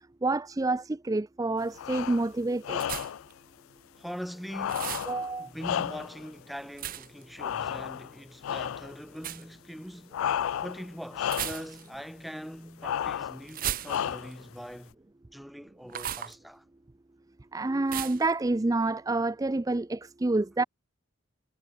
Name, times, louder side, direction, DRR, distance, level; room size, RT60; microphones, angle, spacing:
voice 1, 0.2-2.8 5.1-5.5 17.5-20.6, right 2 dB, 15° right, 0.4 m, -28 dB
sound 1, 1.7-2.3 2.6-3.3 4.5-6.3 7.4-8.1 8.4-8.9 10.1-10.9 11.1-11.7 12.8-13.4 13.9-14.5, left 9 dB, 75° left, 0.3 m, -32 dB
sound 2, 2.8-3.3 4.7-5.1 6.8-7.2 9.2-9.4 11.2-12.0 13.5-14.3 15.9-16.4 17.9-18.3, right 11 dB, 45° right, 0.7 m, -35 dB
voice 2, 4.0-4.9 5.4-10.2 10.6-14.9 15.3-16.6, equal, ahead, 4.1 m, -42 dB
head